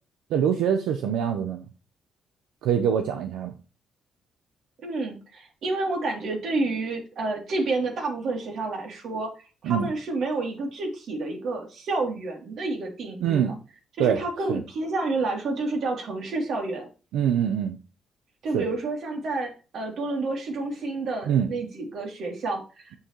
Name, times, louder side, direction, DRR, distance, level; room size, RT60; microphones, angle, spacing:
voice 1, 0.3-1.7 2.6-3.5 9.6-9.9 13.2-13.5 14.0-14.2 14.5-14.6 17.1-17.8 18.5-18.6 21.3-21.5, right 8 dB, 90° right, 6 dB, 1.0 m, -24 dB
voice 2, 4.8-9.3 9.6-13.5 14.0-16.9 18.4-23.0, right 3 dB, 65° right, 1 dB, 3.5 m, -29 dB
8.3 x 7.7 x 3.3 m, 0.33 s
cardioid pair, 90°, 0 cm